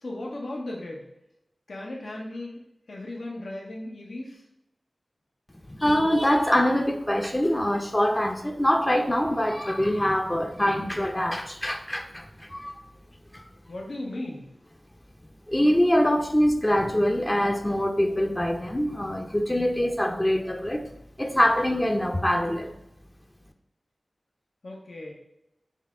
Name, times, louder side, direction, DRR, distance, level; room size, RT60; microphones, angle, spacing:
voice 1, 0.0-1.1 1.7-2.6 2.9-4.4 13.7-14.5 24.6-25.1, left 1 dB, 80° left, -1 dB, 0.8 m, -36 dB
voice 2, 5.7-12.7 13.3-13.4 15.5-20.9 21.2-22.7, equal, 20° left, 4 dB, 0.5 m, -24 dB
5.5 x 2.3 x 3.6 m, 0.83 s
cardioid pair, 45°, 0 cm